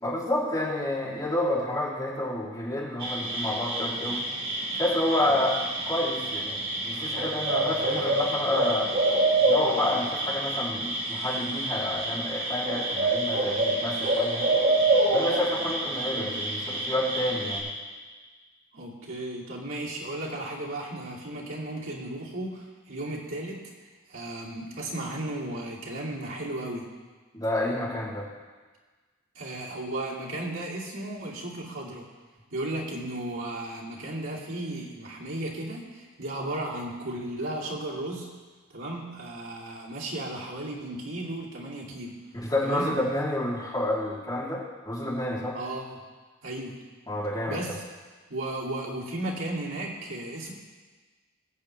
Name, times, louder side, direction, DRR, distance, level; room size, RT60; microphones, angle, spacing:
voice 1, 0.0-4.3 4.7-5.6 5.9-6.6 6.8-8.9 9.5-14.5 15.1-17.7 27.3-28.3 42.4-45.6 47.1-47.7, left 1 dB, 20° left, -8 dB, 3.1 m, -29 dB
sound 1, 3.0-17.6, right 2 dB, 50° right, 4.2 m, -27 dB
voice 2, 18.7-23.6 24.1-26.9 29.3-32.1 32.5-38.3 38.7-42.2 42.6-42.9 45.5-46.0 46.4-46.8 47.5-47.8 48.3-50.5, right 1 dB, 75° right, -5 dB, 2.7 m, -35 dB
21.5 x 8.7 x 3.3 m, 1.4 s
head